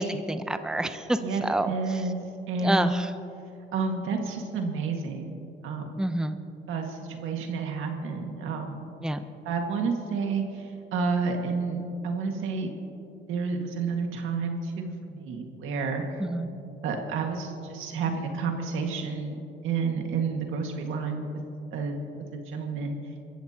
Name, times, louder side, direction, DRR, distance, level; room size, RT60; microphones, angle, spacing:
voice 1, 0.0-2.0 2.6-3.1 6.0-6.4 9.0-9.2 16.2-16.5, right 1 dB, 5° right, 9 dB, 0.7 m, -28 dB
voice 2, 1.2-2.2 2.5-3.0 3.7-6.0 6.7-8.9 9.5-12.7 13.3-16.2 16.8-21.4 21.7-23.0, right 4 dB, 85° right, 3 dB, 1.8 m, -30 dB
24.5 x 14.5 x 2.9 m, 2.7 s
cardioid pair, 90°, 20 cm